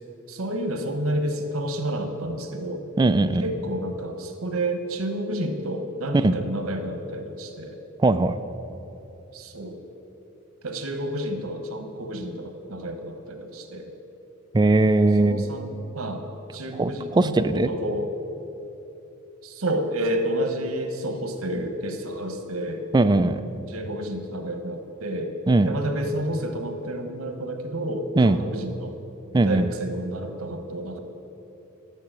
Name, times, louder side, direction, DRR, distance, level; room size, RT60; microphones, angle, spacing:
voice 1, 0.3-2.8 3.4-7.8 9.3-9.8 10.6-13.9 15.2-16.3 16.5-18.1 19.4-22.8 23.7-25.3 25.7-28.9 29.4-31.0, right 1 dB, 80° right, 6 dB, 1.2 m, -30 dB
voice 2, 3.0-3.4 6.2-6.4 8.0-8.4 14.5-15.5 16.8-17.7 22.9-23.4 25.5-25.7 28.2-28.4 29.3-29.7, right 2 dB, 20° right, 10 dB, 0.4 m, -19 dB
11.5 x 6.8 x 7.6 m, 3.0 s
head